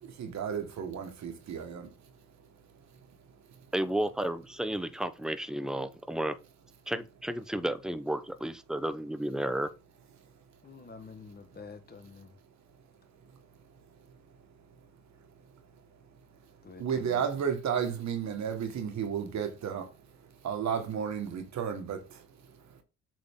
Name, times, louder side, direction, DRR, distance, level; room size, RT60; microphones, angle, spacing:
voice 1, 0.0-1.9 16.8-19.9 20.4-22.3, right 7 dB, 65° right, 1.7 m, -33 dB
voice 2, 3.7-6.4 6.9-9.7, right 1 dB, ahead, 0.7 m, -32 dB
voice 3, 10.6-12.4 16.6-17.3, left 4 dB, 30° left, 1.3 m, -48 dB
7.7 x 3.9 x 3.7 m
cardioid pair, 90°, 30 cm